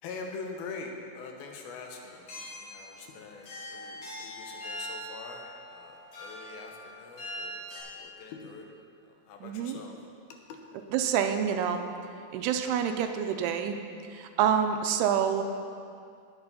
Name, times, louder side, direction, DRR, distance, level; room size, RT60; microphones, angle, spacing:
voice 1, 0.0-2.2 2.6-8.7 9.3-9.9, left 4 dB, 75° left, 2 dB, 2.7 m, -44 dB
sound 1, 2.1-7.8, equal, 55° left, 3.6 m, -42 dB
voice 2, 9.4-9.8 10.9-11.9 12.3-13.8 14.1-15.6, right 8 dB, 85° right, 6 dB, 2.6 m, -27 dB
17.5 x 6.9 x 4.1 m, 2.4 s
omnidirectional pair, 4.6 m